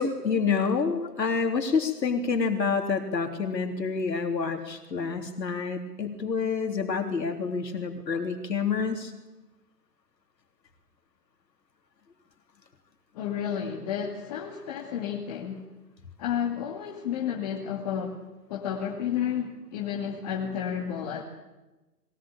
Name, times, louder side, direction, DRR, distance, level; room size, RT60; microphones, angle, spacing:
voice 1, 0.0-9.1, left 5 dB, 80° left, 4 dB, 3.7 m, -28 dB
voice 2, 13.1-15.6 16.2-18.2 18.5-21.2, left 8 dB, 25° left, -1 dB, 2.3 m, -31 dB
22.0 x 20.0 x 8.9 m, 1.1 s
hypercardioid pair, 160°, 49 cm